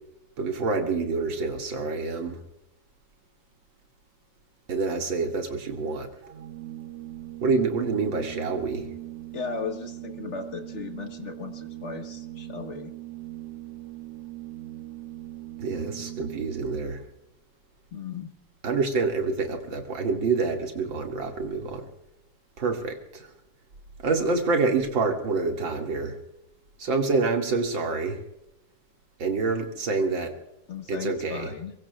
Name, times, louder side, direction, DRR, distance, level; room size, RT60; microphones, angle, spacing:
voice 1, 0.4-2.4 4.7-6.1 7.4-8.9 15.6-17.0 18.6-21.8 22.6-23.3 24.0-26.2 26.8-28.2 29.2-30.3 30.9-31.5, right 4 dB, 45° right, 2 dB, 2.7 m, -27 dB
Organ, 6.2-16.9, right 15 dB, 75° right, 2.5 m, -40 dB
voice 2, 9.3-12.9 17.9-18.3 30.7-31.7, left 5 dB, 45° left, 5 dB, 0.9 m, -36 dB
24.0 x 23.0 x 2.4 m, 0.85 s
omnidirectional pair, 3.3 m